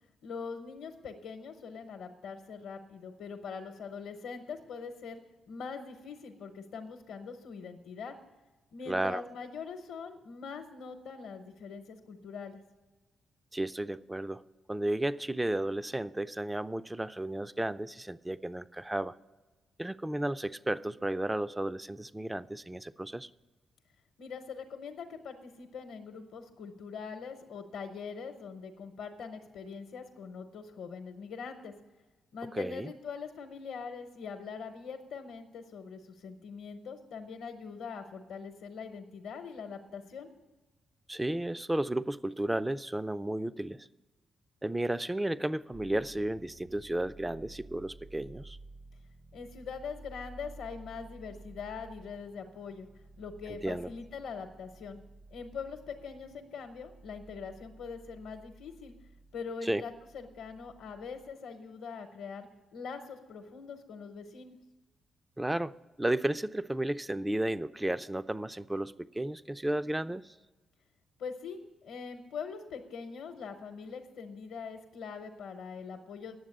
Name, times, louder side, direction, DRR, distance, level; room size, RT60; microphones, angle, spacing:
voice 1, 0.2-5.2 5.5-8.2 8.7-12.6 24.2-31.7 32.3-40.3 49.3-52.9 53.2-55.0 55.3-58.9 59.3-64.6 71.2-76.4, left 5 dB, 80° left, 4 dB, 0.8 m, -42 dB
voice 2, 8.9-9.2 13.5-14.4 14.7-19.2 19.8-23.3 32.5-32.9 41.1-43.9 44.6-48.6 53.6-53.9 59.7-59.8 65.4-70.3, right 1 dB, 15° right, 15 dB, 0.4 m, -33 dB
sound 1, 45.7-61.3, right 2 dB, 40° right, 0.9 m, -53 dB
9.5 x 7.2 x 8.9 m, 1.2 s
supercardioid pair, 55°, 0 cm